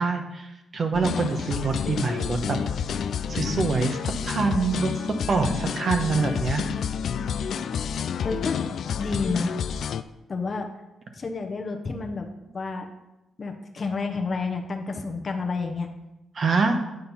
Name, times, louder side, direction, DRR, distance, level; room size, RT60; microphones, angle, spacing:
voice 1, 0.0-2.6 3.3-6.6 16.3-16.8, right 4 dB, 50° right, 5 dB, 1.0 m, -25 dB
sound 1, 0.9-10.0, left 7 dB, 65° left, 0.3 m, -29 dB
voice 2, 8.2-8.6 9.0-9.6 10.3-10.7 11.2-12.9 13.4-15.9, left 4 dB, 40° left, 3 dB, 0.9 m, -30 dB
9.1 x 4.4 x 5.5 m, 0.95 s
cardioid pair, 80°, 0 cm